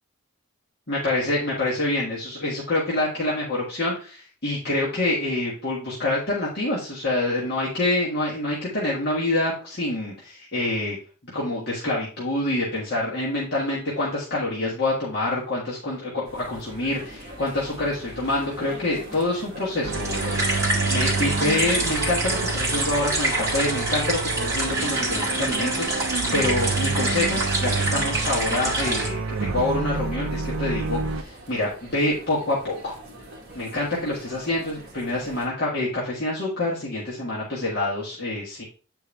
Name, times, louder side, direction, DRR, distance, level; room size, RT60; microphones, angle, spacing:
voice 1, 0.9-11.0 11.3-32.9 33.5-38.6, left 2 dB, 50° left, -6 dB, 1.7 m, -26 dB
sound 1, 16.2-35.5, equal, 50° right, 1.6 m, -43 dB
sound 2, 19.8-31.2, right 4 dB, 65° right, 0.4 m, -29 dB
sound 3, 19.9-29.1, right 1 dB, 15° right, 1.9 m, -26 dB
8.4 x 4.5 x 3.3 m, 0.39 s
head